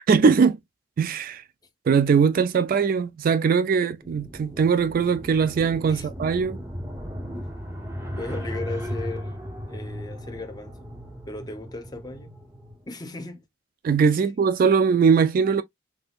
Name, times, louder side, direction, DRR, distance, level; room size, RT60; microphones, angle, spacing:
voice 1, 0.1-0.6 1.0-1.4 1.9-6.6 13.8-15.6, right 5 dB, 50° right, 0.3 m, -20 dB
sound 1, 4.0-12.8, equal, 15° right, 0.7 m, -36 dB
voice 2, 8.2-9.4 9.7-10.9 11.3-12.3 12.9-13.4 14.1-14.2, left 2 dB, 20° left, 0.7 m, -36 dB
3.5 x 2.7 x 2.4 m
head